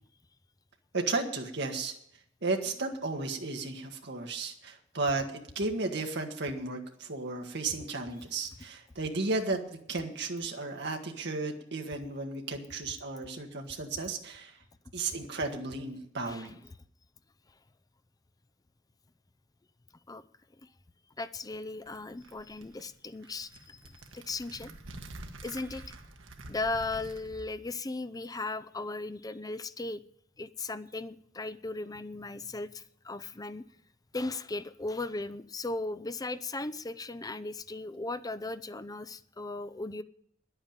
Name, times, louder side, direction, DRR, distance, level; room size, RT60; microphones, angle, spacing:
voice 1, 0.9-1.9 2.4-14.6 14.9-16.6, right 3 dB, 60° right, 3 dB, 1.8 m, -34 dB
voice 2, 21.2-24.7 25.4-25.9 26.5-30.0 30.4-33.7 34.1-40.0, left 2 dB, 20° left, 12 dB, 0.6 m, -37 dB
sound 1, 21.5-27.5, right 2 dB, 85° right, 1.4 m, -48 dB
10.5 x 8.8 x 9.0 m, 0.68 s
head